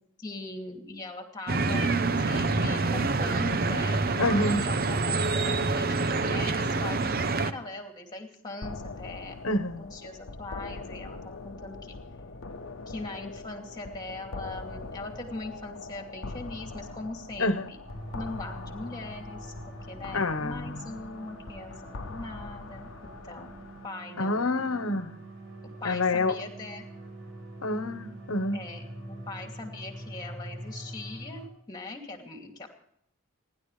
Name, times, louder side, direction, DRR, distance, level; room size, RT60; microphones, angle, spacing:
voice 1, 0.2-4.0 4.4-9.3 9.8-12.0 12.9-17.8 18.1-19.5 19.9-23.6 23.8-24.5 25.6-26.8 28.5-32.7, left 2 dB, 20° left, 2.5 m, -41 dB
sound 1, 1.5-7.5, right 3 dB, 45° right, 0.7 m, -26 dB
voice 2, 4.2-4.6 9.4-9.8 17.4-17.7 20.1-20.8 24.2-25.1 25.8-26.3 27.6-28.6, left 2 dB, 85° left, 1.1 m, -27 dB
sound 2, 8.6-23.9, left 3 dB, 70° left, 0.9 m, -42 dB
sound 3, 17.8-31.5, right 1 dB, 70° right, 6.1 m, -44 dB
28.5 x 11.5 x 3.3 m
head